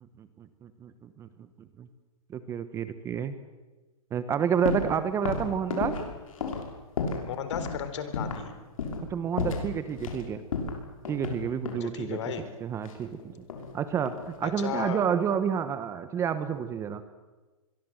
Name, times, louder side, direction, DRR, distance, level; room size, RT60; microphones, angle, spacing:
voice 1, 0.2-1.5 1.8-1.9 2.3-3.4 4.1-6.1 9.1-10.4 11.1-12.2 12.6-13.3 13.7-17.0, right 8 dB, 15° right, 12 dB, 1.0 m, -30 dB
sound 1, 4.6-4.9 5.2-7.3 7.5-7.8 8.1-8.5 8.8-9.1 9.4-10.2 10.5-11.9 12.8-13.7 14.0-14.5, left 4 dB, 70° left, 6.3 m, -32 dB
voice 2, 7.2-8.5 11.8-12.4 14.4-15.0, left 8 dB, 55° left, 10 dB, 4.0 m, -34 dB
26.0 x 22.5 x 7.9 m, 1.2 s
hypercardioid pair, 150°, 18 cm